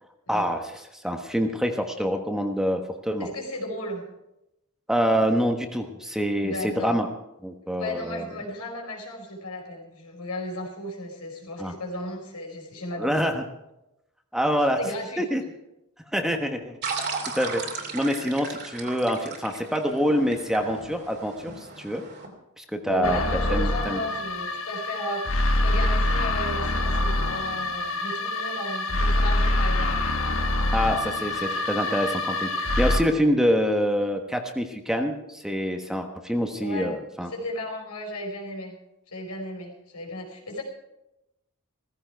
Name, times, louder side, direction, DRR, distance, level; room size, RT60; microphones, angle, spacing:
voice 1, 0.3-3.3 4.9-7.1 7.4-8.2 11.6-11.7 13.0-13.4 14.3-14.8 15.2-15.4 16.1-16.8 17.3-22.0 22.6-24.0 30.7-37.3, equal, ahead, 4 dB, 1.2 m, -26 dB
voice 2, 3.2-4.1 6.4-7.0 7.8-13.2 14.8-15.2 22.8-30.2 36.6-37.0 37.2-38.7 39.1-40.6, left 1 dB, 90° left, 1 dB, 4.6 m, -35 dB
sound 1, 16.8-22.3, right 4 dB, 50° right, 2.8 m, -36 dB
sound 2, 23.0-33.0, left 1 dB, 65° left, 1.4 m, -25 dB
16.5 x 15.0 x 4.6 m, 0.89 s
head